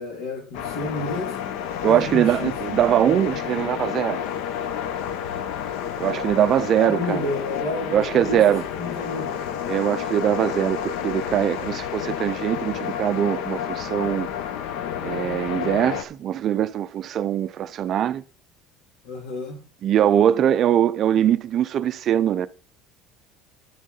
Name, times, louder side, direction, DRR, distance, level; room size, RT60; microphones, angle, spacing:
voice 1, 0.0-1.4 1.8-2.5 6.8-8.4 8.7-9.5 19.0-19.6, left 2 dB, 85° left, 3.0 m, -30 dB
sound 1, 0.5-16.0, left 9 dB, 70° left, 0.9 m, -30 dB
voice 2, 1.8-4.2 6.0-7.2 7.9-8.6 9.7-14.3 15.0-18.2 19.8-22.5, right 10 dB, 35° right, 0.4 m, -22 dB
10.5 x 6.4 x 5.4 m
cardioid pair, 170°, 0 cm